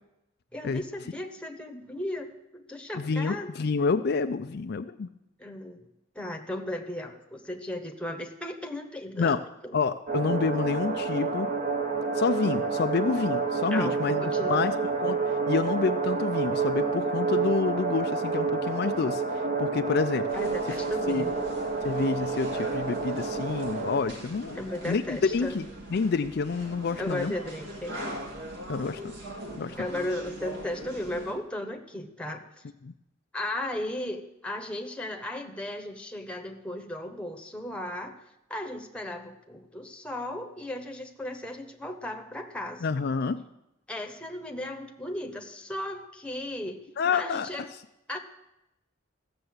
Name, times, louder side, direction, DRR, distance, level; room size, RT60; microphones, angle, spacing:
voice 1, 0.5-3.5 5.4-5.8 6.1-9.8 13.7-14.7 20.3-21.4 24.6-25.5 27.0-28.0 29.8-32.4 33.3-38.2 38.5-42.8 43.9-46.8 47.1-47.7 48.1-48.2, left 1 dB, 5° left, 4 dB, 1.1 m, -36 dB
voice 2, 2.9-5.1 9.2-9.4 9.7-11.5 12.1-14.7 15.0-15.2 15.5-20.3 21.1-21.3 21.8-27.3 28.7-29.0 29.6-29.8 32.8-32.9 42.8-43.4 47.0-47.7, left 4 dB, 50° left, 8 dB, 0.4 m, -28 dB
sound 1, 10.1-24.0, right 4 dB, 40° right, 1.2 m, -29 dB
sound 2, 20.3-31.3, right 1 dB, 60° right, 2.1 m, -41 dB
14.5 x 6.8 x 7.9 m, 0.89 s
head